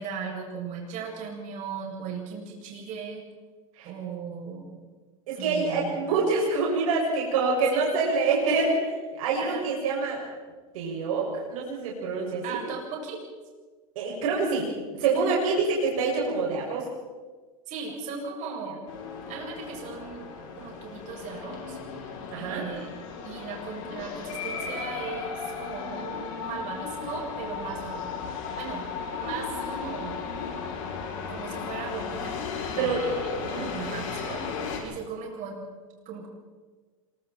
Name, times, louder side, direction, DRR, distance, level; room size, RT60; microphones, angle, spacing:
voice 1, 0.0-3.2 3.8-4.7 5.4-6.0 7.7-7.8 9.4-9.6 12.4-13.2 15.1-15.3 17.7-18.8 19.3-20.3 20.6-21.8 22.4-22.9 23.2-28.2 28.6-28.9 29.2-30.2 31.3-32.3 32.7-35.7 36.0-36.3, right 6 dB, 45° right, -1 dB, 7.8 m, -37 dB
voice 2, 5.3-10.2 10.7-12.6 13.9-16.9 22.3-22.6 32.8-33.1 33.4-33.7, right 4 dB, 75° right, -2 dB, 6.7 m, -26 dB
sound 1, 18.9-34.8, left 6 dB, 65° left, 6.8 m, -35 dB
27.0 x 24.5 x 4.5 m, 1.4 s
supercardioid pair, 120°, 18 cm